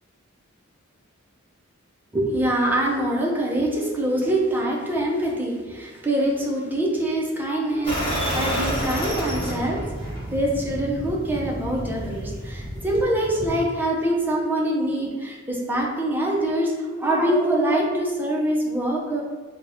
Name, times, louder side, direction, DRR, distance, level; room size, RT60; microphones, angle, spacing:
voice 1, 2.1-19.2, right 1 dB, 10° right, -3 dB, 0.6 m, -24 dB
sound 1, 7.8-13.6, equal, 25° left, 1.5 m, -29 dB
3.9 x 2.1 x 3.4 m, 1.4 s
head